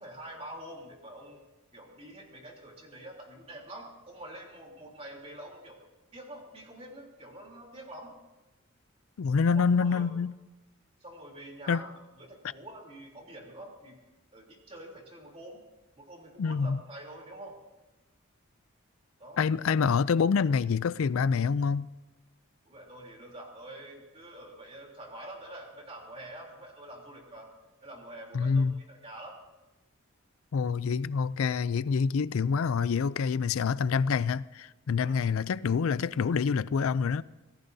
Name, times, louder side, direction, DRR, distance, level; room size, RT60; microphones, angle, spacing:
voice 1, 0.0-1.4 1.7-8.1 9.5-10.1 11.0-14.0 14.3-15.6 16.0-17.6 19.2-19.4 22.6-27.5 27.8-29.4 35.0-35.2, right 1 dB, 25° right, 3.4 m, -46 dB
voice 2, 9.2-10.4 11.7-11.8 16.4-16.8 19.4-21.9 28.3-28.7 30.5-37.2, left 5 dB, 75° left, 0.4 m, -26 dB
26.5 x 18.0 x 2.7 m
head